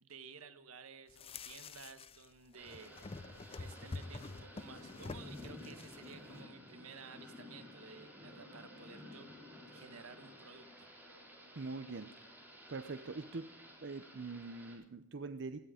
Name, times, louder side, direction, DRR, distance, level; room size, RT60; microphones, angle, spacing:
voice 1, 0.0-3.0 3.5-9.3 9.6-10.9, right 5 dB, 80° right, 11 dB, 1.3 m, -54 dB
sound 1, 1.1-2.3 2.5-6.1, left 3 dB, 25° left, 0.5 m, -47 dB
Thunder / Rain, 2.6-14.7, left 1 dB, 10° right, 3.5 m, -54 dB
voice 2, 11.6-12.1 12.7-13.5 13.8-15.6, right 3 dB, 60° right, 10 dB, 0.7 m, -43 dB
17.0 x 12.5 x 5.0 m, 0.88 s
head